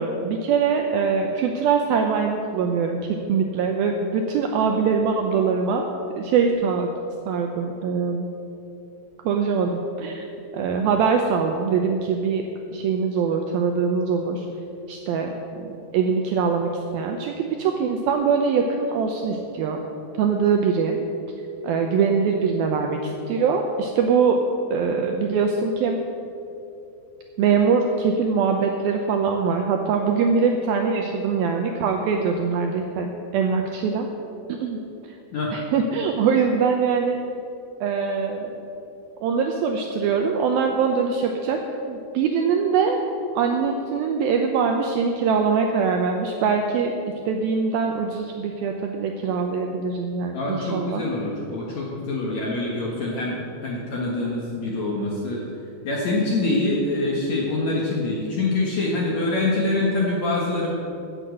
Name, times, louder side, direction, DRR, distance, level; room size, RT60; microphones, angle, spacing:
voice 1, 0.0-3.0 3.3-5.9 6.2-6.9 7.3-8.3 9.2-10.2 10.5-12.4 12.7-14.5 14.9-15.3 15.6-19.8 20.2-21.0 21.6-24.4 24.7-26.0 27.4-34.1 34.5-34.8 35.5-37.2 37.8-38.6 39.2-41.6 41.9-43.0 43.4-46.9 47.3-51.0, right 5 dB, 85° right, 3 dB, 2.1 m, -23 dB
voice 2, 50.3-55.4 55.8-60.7, left 2 dB, 60° left, -3 dB, 1.9 m, -25 dB
15.5 x 7.8 x 6.6 m, 2.8 s
omnidirectional pair, 5.1 m